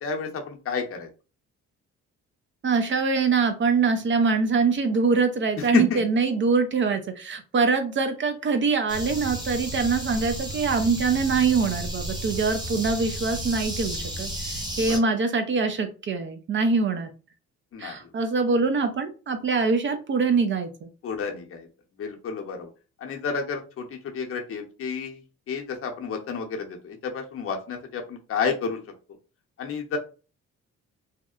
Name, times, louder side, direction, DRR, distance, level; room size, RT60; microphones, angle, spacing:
voice 1, 0.0-1.1 5.7-6.0 14.9-15.0 17.7-18.0 21.0-21.7 22.0-22.7 23.0-25.2 25.5-28.8 29.6-30.0, left 5 dB, 50° left, 3 dB, 0.7 m, -30 dB
voice 2, 2.6-17.1 17.8-20.9, right 4 dB, 40° right, 7 dB, 0.5 m, -24 dB
sound 1, 8.9-15.0, right 1 dB, 15° right, 0.9 m, -33 dB
2.8 x 2.0 x 2.3 m, 0.34 s
cardioid pair, 90°, 30 cm